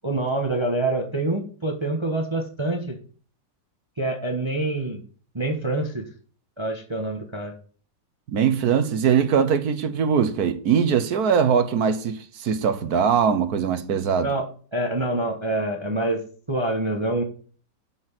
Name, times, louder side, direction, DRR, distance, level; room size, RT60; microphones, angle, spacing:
voice 1, 0.0-3.0 4.0-5.0 5.3-6.0 6.6-7.5 14.2-17.2, right 2 dB, 15° right, 1.2 m, -26 dB
voice 2, 8.3-14.3, right 7 dB, 60° right, 1.3 m, -21 dB
7.7 x 6.1 x 7.4 m
omnidirectional pair, 1.9 m